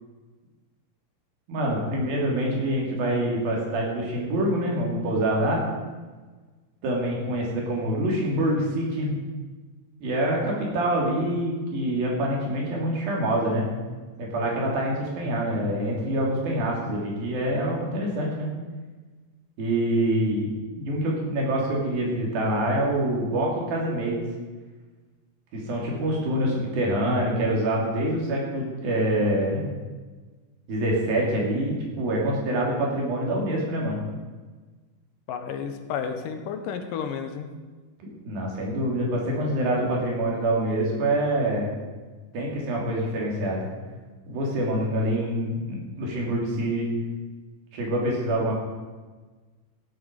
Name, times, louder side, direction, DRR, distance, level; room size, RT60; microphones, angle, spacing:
voice 1, 1.5-5.6 6.8-9.2 10.0-13.7 14.2-18.5 19.6-20.5 20.8-24.2 25.5-29.7 30.7-34.0 38.0-41.7 42.3-43.7 44.3-46.9 47.7-48.6, right 1 dB, 85° right, -2 dB, 4.6 m, -26 dB
voice 2, 35.3-37.5, left 7 dB, 75° left, 7 dB, 2.5 m, -32 dB
16.0 x 8.4 x 5.2 m, 1.3 s
omnidirectional pair, 4.1 m